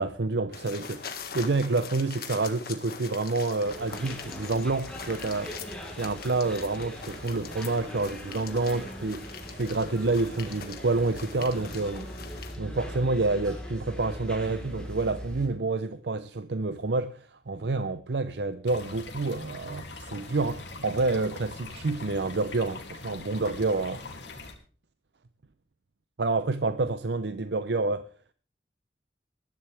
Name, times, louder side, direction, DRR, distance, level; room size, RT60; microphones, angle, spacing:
voice 1, 0.0-5.5 5.9-12.1 12.6-17.2 17.5-24.0 26.2-28.0, right 3 dB, 70° right, 0.7 m, -28 dB
sound 1, 0.5-12.6, left 5 dB, 55° left, 1.8 m, -42 dB
sound 2, 3.6-15.5, equal, 5° left, 3.9 m, -41 dB
sound 3, 18.7-24.5, left 3 dB, 75° left, 2.8 m, -42 dB
20.5 x 11.5 x 3.4 m
head